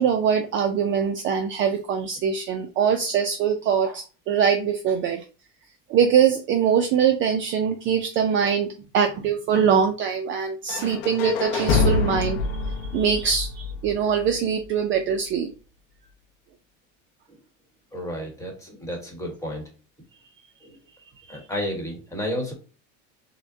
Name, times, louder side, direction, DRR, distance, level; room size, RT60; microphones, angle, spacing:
voice 1, 0.0-5.2 5.9-8.7 8.9-12.4 12.6-15.5 21.3-21.4, right 7 dB, 35° right, 5 dB, 0.4 m, -23 dB
sound 1, 10.7-14.6, left 4 dB, 70° left, 0.7 m, -26 dB
voice 2, 17.9-19.6 20.6-20.8 21.3-22.5, equal, 10° left, 1 dB, 1.2 m, -31 dB
6.4 x 2.1 x 2.6 m, 0.34 s
cardioid pair, 150°, 36 cm